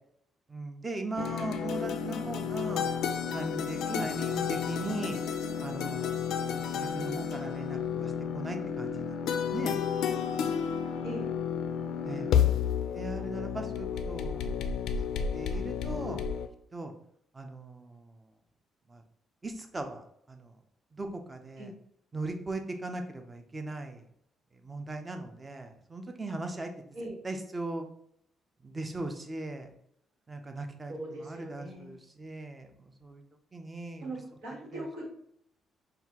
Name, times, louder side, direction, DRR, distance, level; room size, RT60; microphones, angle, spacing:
voice 1, 0.5-2.9 3.3-5.2 5.6-6.2 6.5-9.8 10.4-10.5 12.0-12.3 12.9-14.7 14.9-16.2 16.7-16.9 17.3-18.3 18.9-19.0 19.4-20.6 20.9-21.7 22.1-24.0 24.5-26.7 27.2-27.8 28.6-29.7 30.3-33.2 33.5-34.1 34.7-34.8, right 2 dB, 25° right, 5 dB, 0.6 m, -39 dB
sound 1, 1.2-16.5, left 7 dB, 80° left, 0.3 m, -31 dB
voice 2, 30.9-32.0 34.0-35.1, right 1 dB, 85° right, -2 dB, 1.4 m, -39 dB
5.5 x 2.4 x 2.9 m, 0.72 s
cardioid pair, 90°, 0 cm